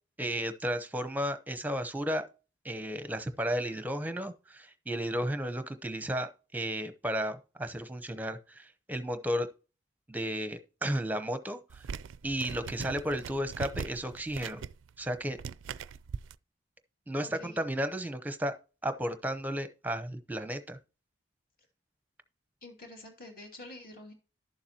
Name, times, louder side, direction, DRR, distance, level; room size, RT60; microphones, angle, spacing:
voice 1, 0.2-2.2 2.6-9.5 10.1-11.8 12.2-14.6 15.0-15.4 17.1-18.5 18.8-20.8, equal, 10° right, 0.7 m, -33 dB
sound 1, 11.7-16.3, right 6 dB, 80° right, 0.4 m, -41 dB
voice 2, 17.2-17.6 22.6-24.1, left 2 dB, 45° left, 2.7 m, -48 dB
12.0 x 7.2 x 2.9 m
head